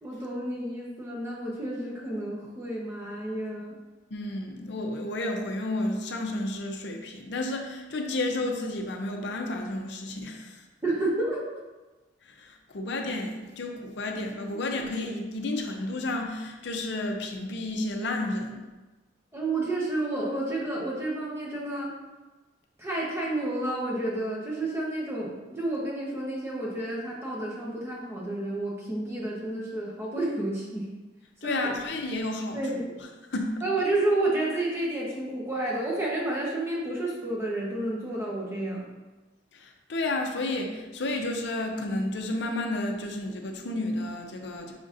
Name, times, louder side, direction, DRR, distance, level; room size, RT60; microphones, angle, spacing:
voice 1, 0.0-3.8 10.8-11.5 19.3-21.9 22.8-30.9 31.4-31.8 32.5-32.9 33.6-38.9, right 2 dB, 15° right, -5 dB, 0.9 m, -30 dB
voice 2, 4.1-10.6 12.2-18.6 31.4-33.6 39.5-44.7, left 2 dB, 65° left, 2 dB, 0.6 m, -31 dB
5.0 x 3.9 x 2.5 m, 1.2 s
head